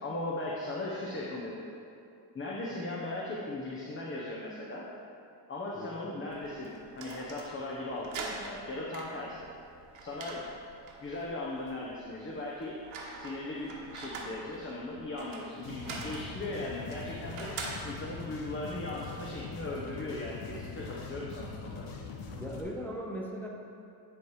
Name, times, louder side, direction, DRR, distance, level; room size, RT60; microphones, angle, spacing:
voice 1, 0.0-1.6 2.3-4.9 5.5-9.4 10.0-10.4 11.0-12.8 13.1-17.6 17.8-21.8, left 2 dB, 25° left, -4 dB, 0.9 m, -38 dB
voice 2, 5.8-6.2 22.3-23.5, equal, 5° left, -2 dB, 0.6 m, -39 dB
sound 1, 6.3-19.5, right 3 dB, 90° right, 1.1 m, -45 dB
sound 2, 15.6-22.6, left 4 dB, 85° left, 0.9 m, -42 dB
10.0 x 3.4 x 4.8 m, 2.5 s
cardioid pair, 90°, 48 cm